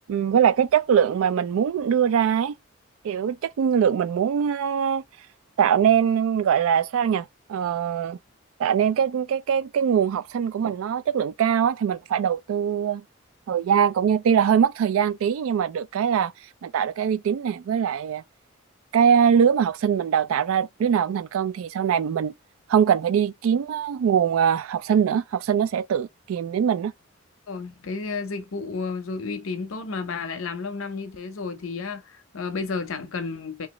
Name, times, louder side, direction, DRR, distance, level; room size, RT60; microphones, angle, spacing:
voice 1, 0.1-2.5 3.0-5.0 5.6-8.2 8.6-13.0 13.5-16.3 16.6-18.2 18.9-22.3 22.7-26.9, right 8 dB, 90° right, 0.3 m, -22 dB
voice 2, 27.5-33.7, left 4 dB, 85° left, 0.6 m, -32 dB
2.9 x 2.3 x 3.0 m
head